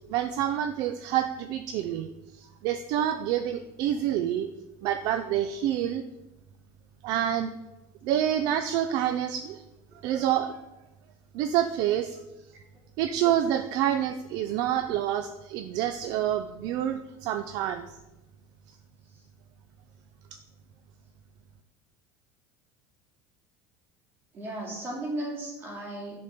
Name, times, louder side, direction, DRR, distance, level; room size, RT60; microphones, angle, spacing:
voice 1, 0.1-4.5 4.8-6.0 7.0-7.5 8.0-9.6 10.0-10.6 11.3-12.2 13.0-18.0, right 11 dB, 55° right, 9 dB, 0.4 m, -27 dB
voice 2, 24.3-26.2, right 1 dB, 25° right, -2 dB, 2.5 m, -35 dB
10.5 x 4.3 x 5.0 m, 1.0 s
cardioid pair, 160°, 8 cm